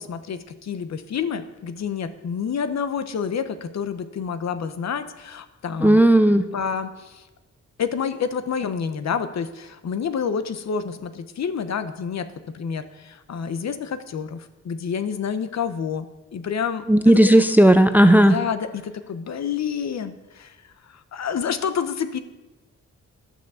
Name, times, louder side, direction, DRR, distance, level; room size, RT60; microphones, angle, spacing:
voice 1, 0.0-6.0 6.5-7.2 7.8-12.3 12.5-17.1 18.3-20.5 21.1-22.2, left 7 dB, 60° left, 11 dB, 0.9 m, -28 dB
voice 2, 5.8-6.5 16.9-18.4, right 1 dB, 5° right, 9 dB, 0.5 m, -14 dB
12.0 x 6.0 x 6.9 m, 1.1 s
wide cardioid pair, 125°, 30 cm